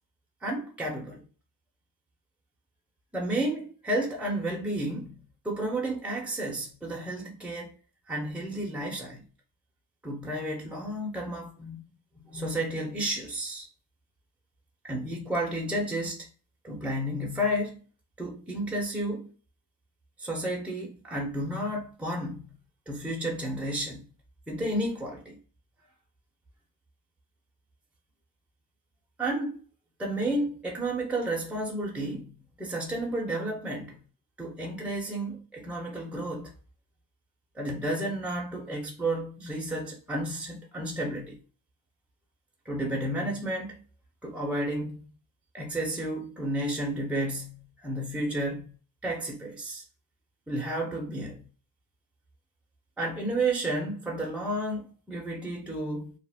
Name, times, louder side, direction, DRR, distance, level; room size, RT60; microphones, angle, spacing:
voice 1, 0.4-1.3 3.1-7.7 8.1-9.3 10.0-11.8 12.3-13.7 14.8-16.2 16.6-17.8 18.2-19.3 20.2-22.6 22.9-24.1 24.5-25.4 29.2-29.6 30.0-34.0 34.4-36.5 37.5-41.4 42.6-43.8 44.2-45.1 45.5-48.8 49.0-49.8 50.5-51.5 53.0-56.1, right 1 dB, 5° right, 0.9 m, -32 dB
2.6 x 2.0 x 3.5 m
supercardioid pair, 65°, 43 cm